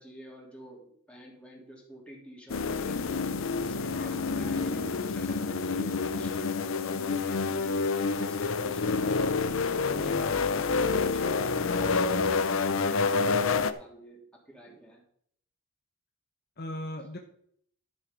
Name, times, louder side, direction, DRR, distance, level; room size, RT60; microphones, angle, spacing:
voice 1, 0.0-3.1 3.5-9.6 9.9-15.0, equal, 5° left, -2 dB, 3.0 m, -46 dB
sound 1, 2.5-13.7, left 4 dB, 65° left, 0.7 m, -28 dB
voice 2, 10.1-10.5 16.6-17.2, left 1 dB, 50° left, 3 dB, 1.2 m, -39 dB
12.0 x 6.9 x 5.2 m, 0.64 s
head